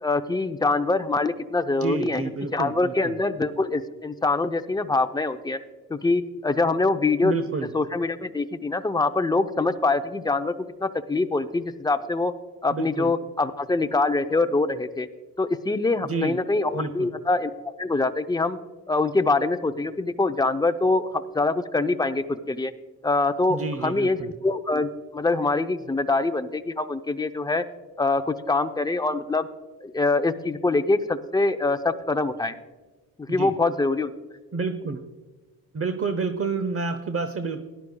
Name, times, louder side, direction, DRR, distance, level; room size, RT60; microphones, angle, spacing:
voice 1, 0.0-5.6 5.9-7.3 7.7-12.3 12.6-15.1 15.4-17.5 17.8-18.6 18.9-22.7 23.0-27.6 28.0-29.5 29.8-32.5 33.2-34.1, left 3 dB, 10° left, 8 dB, 0.6 m, -24 dB
voice 2, 1.8-3.2 7.2-7.7 12.7-13.1 16.0-16.4 16.7-17.1 23.5-24.3 33.3-33.5 34.5-35.0 35.7-37.6, right 4 dB, 35° right, 9 dB, 0.8 m, -29 dB
17.5 x 11.0 x 2.3 m, 1.2 s
cardioid pair, 85°, 38 cm